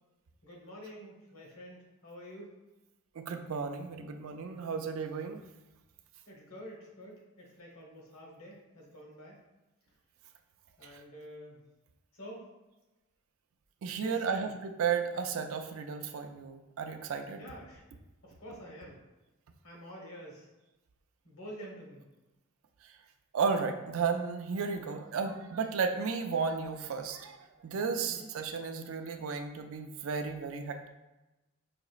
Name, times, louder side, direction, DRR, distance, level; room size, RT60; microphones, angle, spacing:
voice 1, 0.4-2.5 6.3-9.4 10.8-11.6 12.1-12.5 13.9-14.5 17.4-17.8 18.2-19.0 19.6-20.5 21.2-22.1 27.9-28.3, equal, 70° left, -2 dB, 1.1 m, -48 dB
voice 2, 3.2-5.4 10.9-11.0 13.8-17.4 23.3-27.4 27.6-30.9, right 5 dB, 65° right, 5 dB, 0.4 m, -33 dB
5.0 x 2.9 x 2.4 m, 1.0 s
head